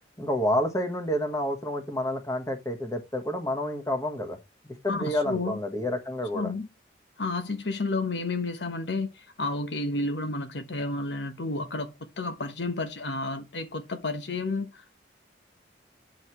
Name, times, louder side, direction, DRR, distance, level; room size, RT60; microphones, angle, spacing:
voice 1, 0.2-4.4 4.6-6.5, left 1 dB, 20° left, 1.3 m, -29 dB
voice 2, 4.9-5.6 6.3-6.7 7.2-9.1 9.4-14.7, left 3 dB, 80° left, 1.1 m, -31 dB
9.1 x 6.5 x 3.1 m
head